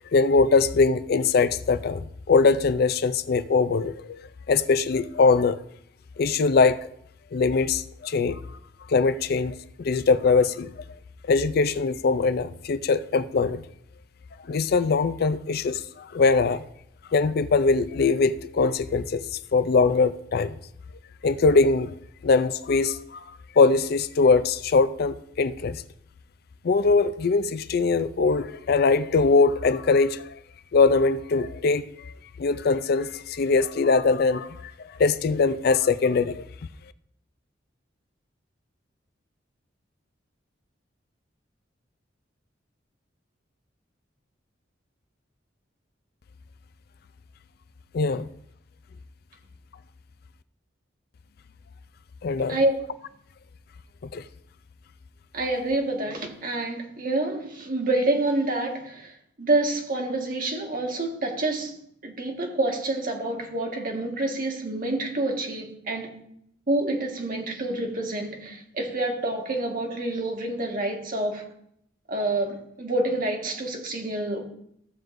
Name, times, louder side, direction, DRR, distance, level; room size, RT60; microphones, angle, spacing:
voice 1, 0.1-5.6 6.2-6.9 7.3-8.4 8.9-10.8 11.3-13.6 14.4-16.7 17.1-20.6 21.2-22.0 22.2-23.2 23.5-25.8 26.6-30.4 30.7-32.1 32.4-34.7 35.0-36.4 47.9-48.3 52.2-52.6 54.0-54.2, left 4 dB, 55° left, 0.4 m, -22 dB
voice 2, 55.3-66.2 66.7-71.5 72.1-74.4, right 2 dB, 50° right, 1.6 m, -27 dB
14.5 x 7.6 x 2.6 m
head